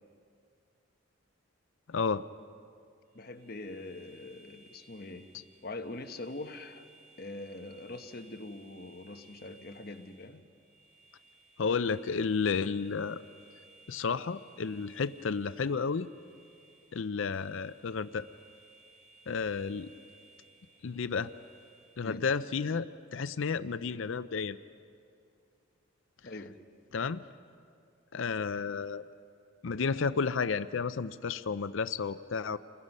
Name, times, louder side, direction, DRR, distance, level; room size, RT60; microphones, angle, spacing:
voice 1, 1.9-2.2 11.6-13.2 13.9-16.1 16.9-18.3 19.3-19.9 20.8-21.3 22.0-24.6 26.9-27.2 28.1-29.0 29.6-32.6, left 5 dB, 70° left, 14 dB, 0.5 m, -32 dB
voice 2, 3.1-5.3 5.6-6.9 7.2-10.4 22.0-22.3 26.2-26.5, left 2 dB, 45° left, 7 dB, 1.0 m, -43 dB
sound 1, 3.1-22.3, right 3 dB, 15° right, 4.9 m, -60 dB
29.0 x 21.5 x 5.4 m, 2.4 s
head